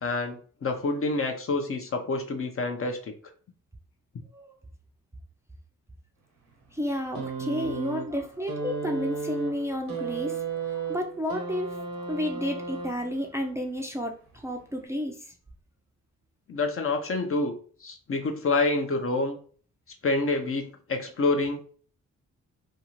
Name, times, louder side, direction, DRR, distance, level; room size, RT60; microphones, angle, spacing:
voice 1, 0.0-3.1 16.5-19.4 20.0-21.7, left 3 dB, 40° left, 5 dB, 0.6 m, -27 dB
voice 2, 6.7-15.3, equal, 10° right, 1 dB, 0.5 m, -32 dB
sound 1, 7.1-13.3 14.4-14.5, right 4 dB, 75° right, 0.9 m, -34 dB
2.6 x 2.4 x 2.9 m, 0.43 s
supercardioid pair, 60°, 34 cm